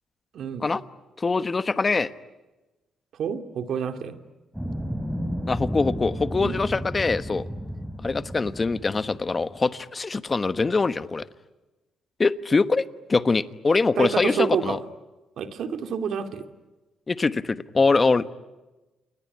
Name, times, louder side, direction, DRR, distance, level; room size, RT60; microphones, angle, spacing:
voice 1, 0.3-0.6 3.1-4.2 6.4-6.6 14.0-14.8 15.4-16.5, right 7 dB, 65° right, 7 dB, 2.5 m, -28 dB
voice 2, 1.2-2.1 5.5-7.4 8.0-11.3 12.2-14.8 17.1-18.3, left 4 dB, 30° left, 13 dB, 1.2 m, -23 dB
sound 1, 4.5-9.6, equal, 5° right, 4.5 m, -33 dB
28.5 x 21.0 x 9.8 m, 1.1 s
cardioid pair, 90°, 0 cm